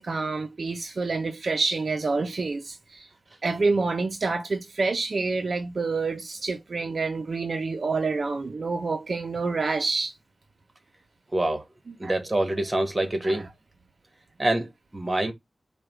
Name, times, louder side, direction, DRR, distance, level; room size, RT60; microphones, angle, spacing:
voice 1, 0.0-3.1 3.4-10.1 11.9-12.1 13.2-13.4, right 3 dB, 60° right, 0.5 m, -28 dB
voice 2, 11.3-11.6 12.0-13.5 14.4-15.3, right 1 dB, 25° right, 1.2 m, -26 dB
4.8 x 2.2 x 4.6 m
wide cardioid pair, 100°, 0 cm